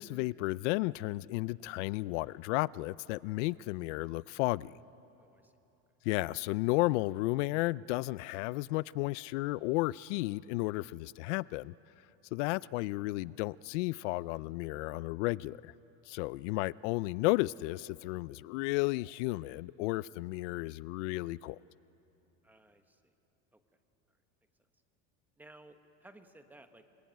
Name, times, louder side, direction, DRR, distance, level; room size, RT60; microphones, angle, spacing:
voice 1, 0.0-4.7 6.0-11.7 12.3-15.7 16.1-21.6, left 20 dB, 85° left, 0.5 m, -33 dB
voice 2, 5.2-5.5 22.4-23.1 23.5-23.6 24.1-24.2 25.4-26.8, right 2 dB, 5° right, 1.1 m, -57 dB
28.0 x 21.0 x 9.3 m
cardioid pair, 165°, 35 cm